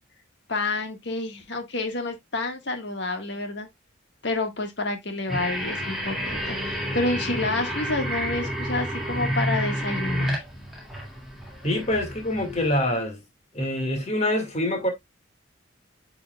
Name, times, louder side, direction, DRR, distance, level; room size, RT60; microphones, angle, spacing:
voice 1, 0.5-3.7 4.2-10.4, left 2 dB, 60° left, 1.6 m, -29 dB
sound 1, 5.3-12.8, equal, ahead, 2.0 m, -30 dB
voice 2, 11.6-13.2 13.5-14.9, left 1 dB, 35° left, 1.9 m, -25 dB
8.4 x 5.0 x 2.3 m
head